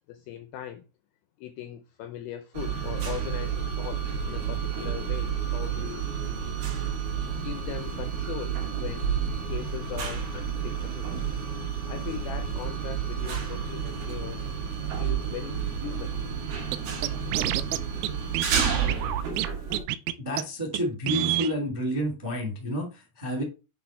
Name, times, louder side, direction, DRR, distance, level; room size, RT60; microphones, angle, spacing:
voice 1, 0.1-0.8 1.4-6.0 7.3-11.1 11.9-14.5 15.0-16.2, left 11 dB, 80° left, 2.1 m, -40 dB
sound 1, 2.5-19.8, right 7 dB, 60° right, 3.5 m, -30 dB
Scratching (performance technique), 16.7-16.8 17.0-17.8 18.0-18.1 18.4-19.5 19.7-20.1 20.4-20.5 20.7-20.8 21.1-21.5, right 14 dB, 85° right, 2.6 m, -27 dB
voice 2, 20.2-23.4, equal, 15° right, 0.8 m, -30 dB
8.2 x 3.3 x 4.3 m
omnidirectional pair, 4.8 m